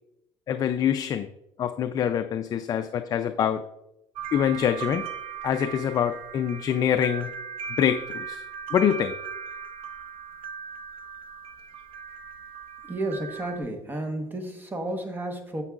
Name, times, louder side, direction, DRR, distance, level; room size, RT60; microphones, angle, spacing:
voice 1, 0.5-1.3 1.6-3.6 4.3-5.0 5.4-7.3 7.8-8.4 8.7-9.1, left 9 dB, 40° left, 8 dB, 0.4 m, -25 dB
sound 1, 4.2-13.6, right 6 dB, 65° right, 1.0 m, -38 dB
voice 2, 12.9-15.6, right 1 dB, 20° right, 4 dB, 1.2 m, -32 dB
9.6 x 7.1 x 2.4 m, 0.85 s
cardioid pair, 135°, 10 cm